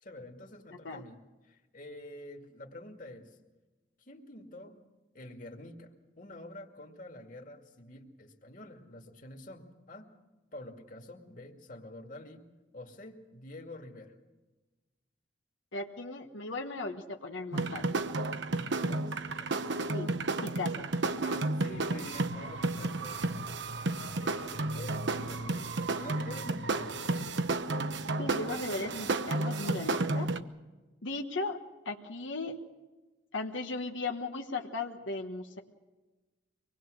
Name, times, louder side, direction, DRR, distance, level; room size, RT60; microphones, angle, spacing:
voice 1, 0.0-3.4 4.0-4.8 5.1-10.1 10.5-12.5 12.7-14.1 18.6-19.7 21.1-23.6 24.2-27.3, left 1 dB, 45° left, 3 dB, 2.3 m, -48 dB
voice 2, 15.7-18.0 19.9-20.1 20.4-20.9 28.2-30.3 31.0-31.6 31.8-32.6 33.3-35.6, left 3 dB, 85° left, 3 dB, 1.4 m, -37 dB
sound 1, 17.5-30.4, right 2 dB, 70° right, 1.0 m, -32 dB
25.0 x 20.0 x 6.4 m, 1.2 s
head